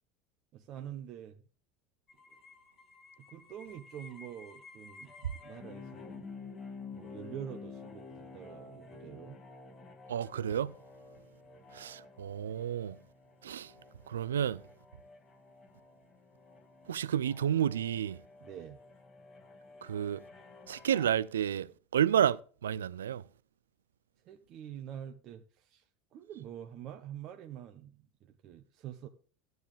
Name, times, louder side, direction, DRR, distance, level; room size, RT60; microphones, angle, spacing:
voice 1, 0.5-1.4 3.3-5.1 5.4-6.3 6.9-9.4 18.4-18.8 24.2-25.8 26.1-29.1, right 10 dB, 45° right, 1.0 m, -46 dB
sound 1, 2.1-21.1, left 4 dB, 35° left, 1.9 m, -51 dB
voice 2, 10.1-10.7 11.8-12.9 13.4-13.7 14.1-14.6 16.9-18.2 19.9-20.2 20.7-21.7 21.9-22.4 22.6-23.2, right 9 dB, 80° right, 0.4 m, -30 dB
13.5 x 9.4 x 3.3 m
hypercardioid pair, 80°, 0 cm